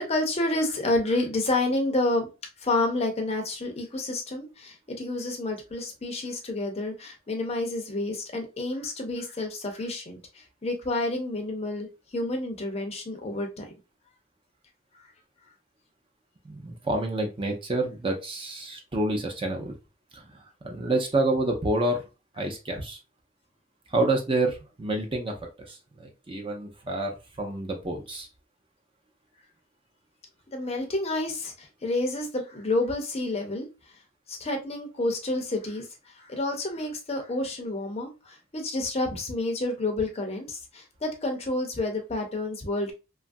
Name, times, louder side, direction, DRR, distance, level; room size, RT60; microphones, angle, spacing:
voice 1, 0.0-2.3 2.6-13.7 30.5-33.7 34.3-42.9, left 2 dB, 30° left, 0.5 m, -29 dB
voice 2, 16.4-19.7 20.1-22.0 22.4-23.0 23.9-25.3 25.7-28.3, right 2 dB, 25° right, 0.5 m, -28 dB
3.0 x 2.4 x 2.5 m
head